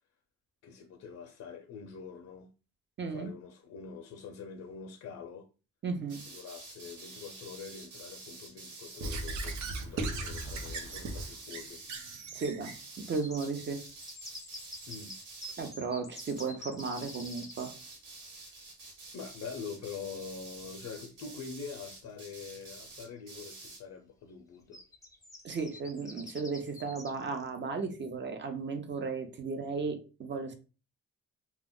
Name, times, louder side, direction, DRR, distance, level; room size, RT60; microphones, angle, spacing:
voice 1, 0.6-2.5 3.1-5.5 6.3-11.8 14.9-15.2 19.1-24.8, left 6 dB, 60° left, 0.5 m, -45 dB
voice 2, 3.0-3.3 5.8-6.2 12.3-12.7 13.1-13.8 15.6-17.7 25.4-30.5, right 4 dB, 40° right, 0.7 m, -35 dB
sound 1, 6.1-9.6 10.2-12.2 12.6-15.8 16.1-16.5 16.8-23.8, right 3 dB, 85° right, 1.3 m, -49 dB
Squeak / Writing, 9.0-12.8, right 2 dB, 70° right, 0.7 m, -37 dB
sound 2, 13.1-17.8 20.2-20.3 20.7-20.8 22.0-22.1 22.4-23.0 23.4-23.6 24.7-27.5, left 1 dB, 10° left, 0.6 m, -47 dB
2.2 x 2.0 x 3.6 m
cardioid pair, 90°, 30 cm